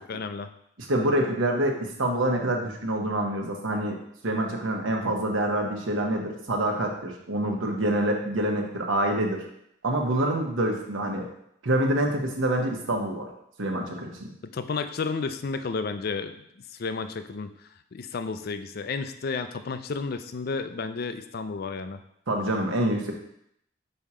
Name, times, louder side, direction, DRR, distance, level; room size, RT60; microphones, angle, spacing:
voice 1, 0.1-0.5 14.5-16.4 16.8-17.5 17.9-22.0, left 4 dB, 50° left, 10 dB, 0.4 m, -32 dB
voice 2, 0.8-4.0 4.2-9.4 9.8-11.3 11.6-13.3 13.6-14.3 22.3-23.1, right 1 dB, 80° right, 2 dB, 1.1 m, -26 dB
5.5 x 4.3 x 4.8 m, 0.74 s
head